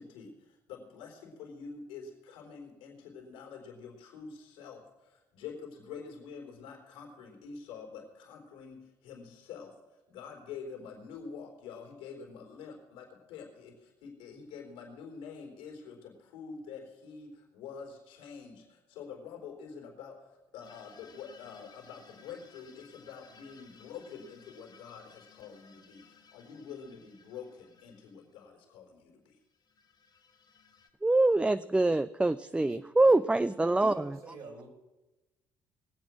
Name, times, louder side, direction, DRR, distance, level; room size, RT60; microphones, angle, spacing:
voice 1, 0.0-9.8 10.1-29.4, left 6 dB, 80° left, 1 dB, 3.5 m, -47 dB
sound 1, 20.6-28.4 29.5-30.9, left 6 dB, 50° left, 2.2 m, -59 dB
voice 2, 31.0-34.1, right 2 dB, 10° right, 14 dB, 0.4 m, -25 dB
voice 3, 32.5-34.7, right 3 dB, 65° right, -1 dB, 4.6 m, -49 dB
21.0 x 7.9 x 6.2 m, 1.0 s
hypercardioid pair, 55°, 10 cm